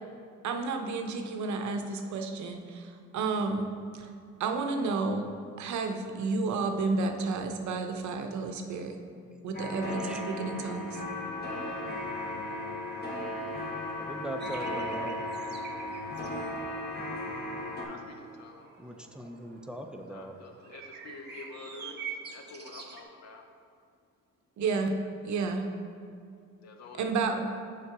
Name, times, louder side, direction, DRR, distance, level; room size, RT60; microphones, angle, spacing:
voice 1, 0.4-4.1 4.4-5.3 5.6-9.0 9.4-11.0 24.6-25.0 25.2-25.7 27.0-27.5, right 4 dB, 70° right, 5 dB, 0.7 m, -31 dB
sound 1, 9.5-17.8, left 1 dB, 35° left, 1.1 m, -36 dB
voice 2, 11.4-12.0 17.8-18.7 20.1-23.5 26.6-27.2, left 3 dB, 60° left, 4 dB, 0.8 m, -48 dB
voice 3, 14.0-15.2 18.8-20.3, right 1 dB, 5° right, 4 dB, 0.5 m, -40 dB
sound 2, 14.4-23.0, right 6 dB, 35° right, 0.8 m, -47 dB
6.6 x 3.9 x 4.7 m, 2.3 s
cardioid pair, 90°, 30 cm